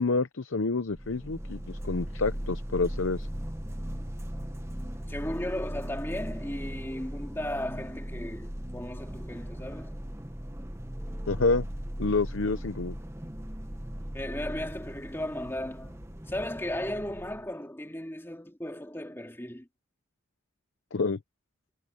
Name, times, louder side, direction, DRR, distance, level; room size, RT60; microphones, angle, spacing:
voice 1, 0.0-3.3 11.3-11.7 12.0-12.9 20.9-21.2, left 3 dB, 65° left, 0.7 m, -28 dB
sound 1, 0.9-17.5, equal, 15° right, 1.2 m, -38 dB
voice 2, 5.1-10.0 11.3-11.4 14.1-16.0 16.3-19.7, left 1 dB, 10° left, 2.7 m, -36 dB
head